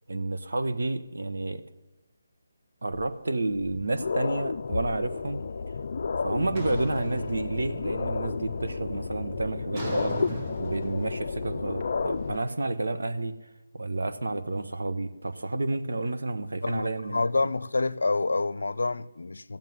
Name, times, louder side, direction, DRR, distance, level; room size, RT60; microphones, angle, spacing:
voice 1, 0.1-1.6 2.8-5.4 6.2-13.4 13.7-17.2, right 2 dB, 80° right, 1.3 m, -30 dB
sound 1, 2.9-3.0 3.6-12.4, left 4 dB, 45° left, 0.6 m, -32 dB
sound 2, 6.5-8.1 8.4-8.9 9.7-12.8, right 3 dB, 20° right, 1.0 m, -39 dB
voice 2, 17.1-19.6, left 3 dB, 85° left, 0.6 m, -27 dB
15.0 x 7.4 x 9.5 m
hypercardioid pair, 175°, 0 cm